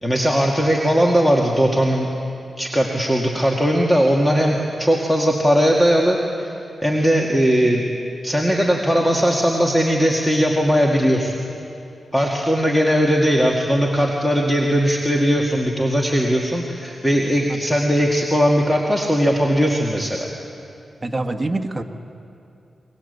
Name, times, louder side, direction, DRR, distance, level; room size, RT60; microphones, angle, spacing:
voice 1, 0.0-2.1 2.6-6.5 6.8-7.8 8.2-11.4 12.1-20.3, equal, 10° left, -1 dB, 2.1 m, -19 dB
voice 2, 21.0-21.8, right 2 dB, 25° right, 5 dB, 1.5 m, -25 dB
23.5 x 20.5 x 8.2 m, 2.7 s
cardioid pair, 85°, 0 cm